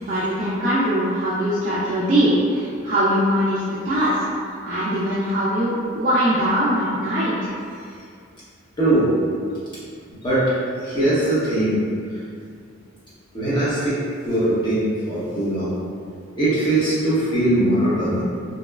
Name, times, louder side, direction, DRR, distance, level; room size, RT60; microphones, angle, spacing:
voice 1, 0.0-4.2 4.6-7.5, equal, 40° right, -10 dB, 0.4 m, -21 dB
voice 2, 8.8-9.1 10.2-10.5 10.8-11.9 13.3-14.0 14.2-15.8 16.4-18.2, right 1 dB, 25° left, -12 dB, 0.8 m, -20 dB
2.9 x 2.1 x 2.3 m, 2.3 s
head